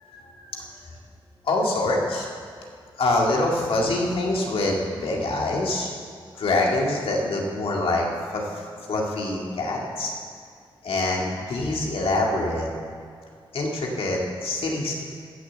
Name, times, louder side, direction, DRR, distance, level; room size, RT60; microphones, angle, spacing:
voice 1, 0.0-0.9 1.4-2.3 3.0-5.9 6.3-8.1 8.3-8.6 8.9-10.2 10.8-12.7 13.5-15.0, left 2 dB, 80° left, -1 dB, 2.2 m, -25 dB
15.0 x 7.1 x 7.4 m, 2.2 s
wide cardioid pair, 105°, 9 cm